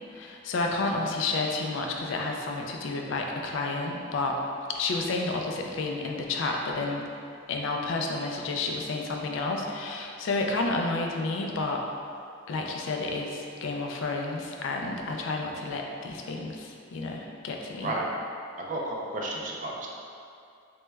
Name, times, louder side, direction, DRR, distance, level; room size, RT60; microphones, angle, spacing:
voice 1, 0.1-4.4 4.7-7.0 7.5-11.8 12.5-17.9, left 3 dB, 65° left, 1 dB, 0.3 m, -30 dB
voice 2, 18.6-19.9, right 2 dB, 40° right, -2 dB, 0.3 m, -32 dB
3.2 x 3.0 x 2.2 m, 2.4 s
head